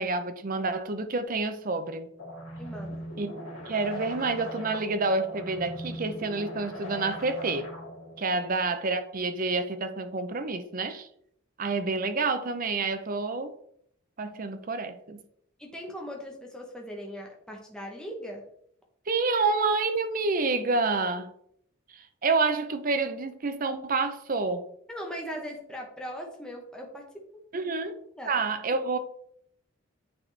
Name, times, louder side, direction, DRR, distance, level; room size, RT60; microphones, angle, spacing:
voice 1, 0.0-2.1 3.2-3.3 3.7-7.7 8.2-11.1 11.6-13.5 14.2-15.2 19.1-21.3 22.2-24.7 27.5-28.0 28.3-29.0, right 3 dB, 40° right, 0.6 m, -28 dB
sound 1, 2.2-8.2, equal, 80° left, 2.5 m, -40 dB
voice 2, 2.6-3.1 15.6-18.4 24.9-27.0 28.2-28.3, equal, 5° left, 0.9 m, -39 dB
8.8 x 4.0 x 3.3 m
head